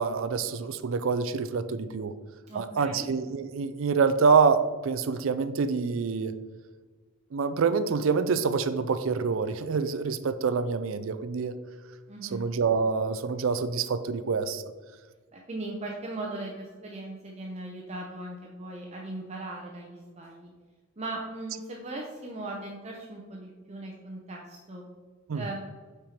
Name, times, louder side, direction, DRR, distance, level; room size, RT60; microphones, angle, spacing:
voice 1, 0.0-2.1 2.5-6.4 7.3-11.5 12.3-14.6 25.3-25.4, right 5 dB, 70° right, 12 dB, 0.4 m, -26 dB
voice 2, 2.5-3.1 12.1-12.5 15.3-20.5 21.0-24.8 25.3-25.6, right 2 dB, 30° right, -1 dB, 0.7 m, -38 dB
5.9 x 4.5 x 5.0 m, 1.4 s
head